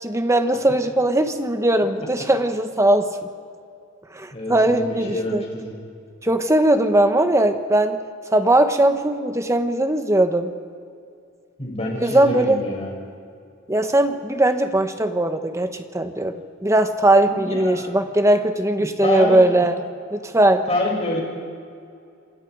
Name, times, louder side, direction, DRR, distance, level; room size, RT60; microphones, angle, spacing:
voice 1, 0.0-3.1 4.1-5.4 6.2-8.0 8.3-10.5 12.0-12.6 13.7-16.4 16.6-19.8 20.1-20.6, right 1 dB, 15° right, 7 dB, 1.3 m, -19 dB
voice 2, 4.3-5.8 11.6-12.9 17.2-17.9 18.8-19.4 20.7-21.2, left 1 dB, 30° left, -2 dB, 6.3 m, -27 dB
28.0 x 25.5 x 4.8 m, 2.4 s
head